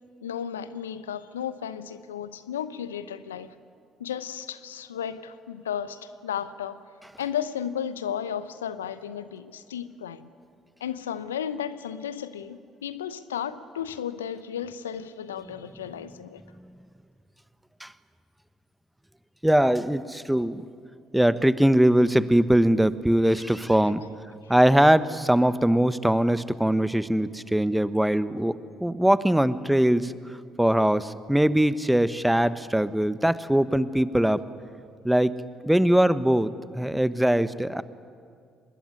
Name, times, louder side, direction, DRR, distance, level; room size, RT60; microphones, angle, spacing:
voice 1, 0.2-3.5 4.0-6.8 7.2-10.3 10.8-16.4 24.4-24.5, left 9 dB, 85° left, 14 dB, 0.8 m, -34 dB
voice 2, 19.4-20.6 21.1-24.0 24.5-30.1 30.6-34.4 35.0-35.4 35.6-37.8, right 1 dB, 5° right, 15 dB, 1.2 m, -21 dB
25.0 x 20.5 x 9.9 m, 2.2 s
hypercardioid pair, 50°, 0 cm